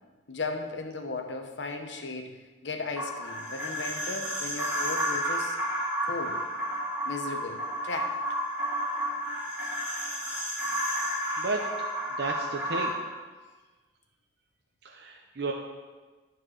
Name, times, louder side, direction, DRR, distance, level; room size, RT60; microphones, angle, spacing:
voice 1, 0.3-5.6 6.0-6.4 7.1-7.6 7.8-8.2, left 3 dB, 80° left, 5 dB, 1.0 m, -36 dB
sound 1, 3.0-12.9, equal, 10° right, 2.3 m, -31 dB
voice 2, 12.2-12.9 14.8-15.5, right 3 dB, 65° right, 1 dB, 0.8 m, -32 dB
11.5 x 4.7 x 6.3 m, 1.3 s
head